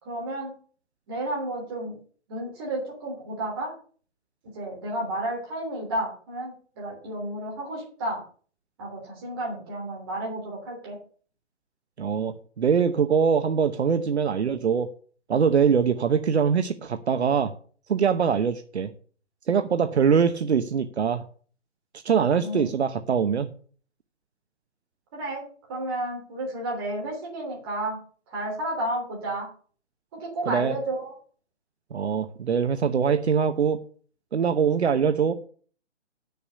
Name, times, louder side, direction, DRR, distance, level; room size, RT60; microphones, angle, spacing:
voice 1, 0.0-0.5 1.1-2.0 2.3-3.7 4.5-8.2 8.8-11.0 22.4-22.7 25.1-25.4 25.7-28.0 28.3-29.5 30.1-31.1, right 1 dB, 20° right, -2 dB, 3.3 m, -32 dB
voice 2, 12.0-14.9 15.3-17.5 17.9-18.9 19.5-21.2 22.0-23.5 30.5-30.8 31.9-33.8 34.3-35.3, right 6 dB, 65° right, 9 dB, 0.9 m, -23 dB
8.2 x 6.8 x 6.9 m, 0.43 s
hypercardioid pair, 180°, 35 cm